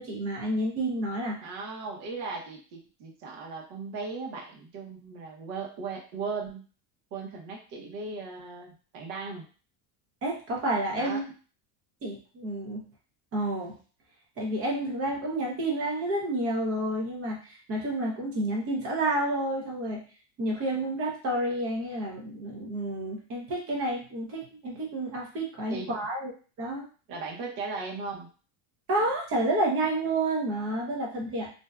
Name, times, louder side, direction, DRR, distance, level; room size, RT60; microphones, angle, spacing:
voice 1, 0.0-1.5 10.2-11.2 12.0-12.9 13.3-13.7 14.4-20.0 20.4-26.3 26.6-26.8 28.9-31.5, right 1 dB, 30° right, -1 dB, 0.7 m, -30 dB
voice 2, 1.4-6.7 7.1-9.4 11.0-11.2 25.7-25.9 27.1-28.3, right 4 dB, 65° right, 1 dB, 0.9 m, -37 dB
2.6 x 2.2 x 2.3 m, 0.38 s
cardioid pair, 160°, 44 cm